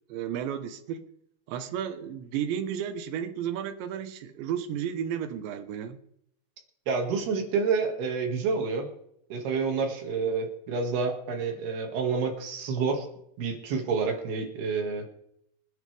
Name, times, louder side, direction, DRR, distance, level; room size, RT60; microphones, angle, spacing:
voice 1, 0.1-1.0 1.5-6.0, right 9 dB, 85° right, 3.3 m, -33 dB
voice 2, 6.9-8.9 9.3-13.1 13.4-15.1, right 5 dB, 65° right, 3.8 m, -28 dB
26.0 x 10.0 x 3.4 m
omnidirectional pair, 5.0 m